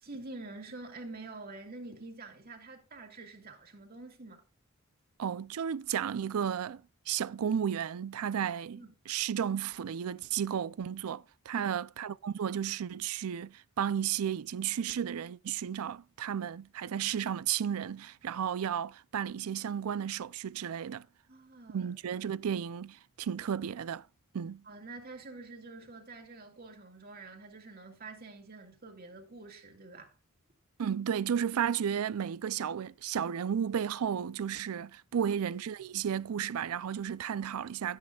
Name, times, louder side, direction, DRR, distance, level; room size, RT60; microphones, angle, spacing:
voice 1, 0.0-4.4 8.8-8.9 11.5-11.7 21.3-21.9 24.6-30.2 35.1-35.3, right 3 dB, 45° right, 2.4 m, -47 dB
voice 2, 5.2-21.1 21.7-24.0 24.3-24.6 30.8-38.0, right 8 dB, 80° right, 0.4 m, -33 dB
13.0 x 9.7 x 2.3 m
head